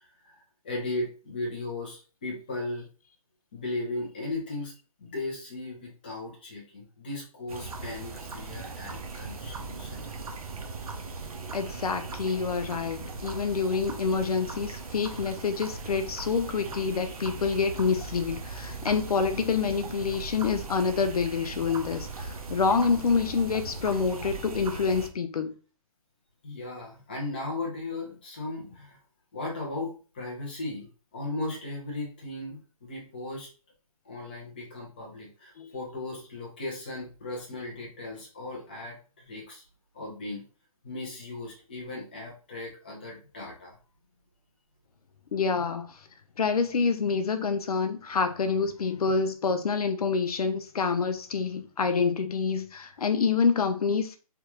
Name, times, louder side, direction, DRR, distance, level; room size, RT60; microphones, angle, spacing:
voice 1, 0.0-2.9 3.5-4.7 5.0-10.1 26.4-29.0 29.3-33.5 34.0-39.6 39.9-40.4 40.8-43.8 49.0-49.1, left 2 dB, 15° left, 0.6 m, -37 dB
sound 1, 7.5-25.1, right 3 dB, 70° right, 0.7 m, -39 dB
voice 2, 11.5-25.5 35.6-35.7 45.3-46.1 46.4-54.2, left 5 dB, 75° left, 0.5 m, -27 dB
3.4 x 2.4 x 2.9 m
hypercardioid pair, 175°, 19 cm